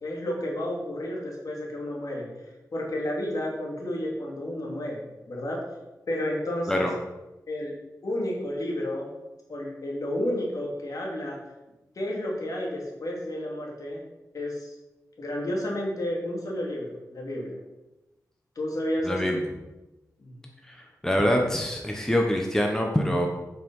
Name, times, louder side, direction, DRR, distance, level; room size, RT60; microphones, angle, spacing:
voice 1, 0.0-2.3 2.7-5.6 6.1-6.9 7.5-7.8 8.0-9.1 9.5-11.4 11.9-14.0 14.3-14.7 15.2-17.6 18.6-19.4 20.2-20.5, left 1 dB, 60° left, -2 dB, 2.6 m, -31 dB
voice 2, 19.0-19.4 20.7-23.3, equal, 10° left, 1 dB, 1.1 m, -25 dB
7.4 x 6.0 x 5.5 m, 1.0 s
wide cardioid pair, 100°, 7 cm